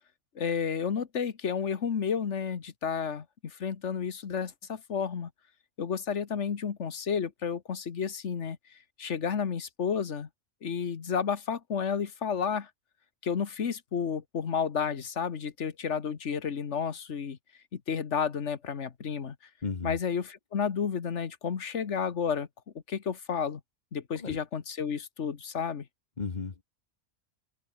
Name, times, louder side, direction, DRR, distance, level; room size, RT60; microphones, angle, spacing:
voice 1, 0.3-5.3 5.8-10.3 10.6-12.7 13.2-17.4 17.7-19.3 19.8-22.5 22.9-23.6 23.9-25.9, left 6 dB, 75° left, 1.7 m, -31 dB
voice 2, 19.6-20.0 24.2-24.4 26.2-26.6, left 4 dB, 40° left, 1.3 m, -34 dB
open air
omnidirectional pair, 1.2 m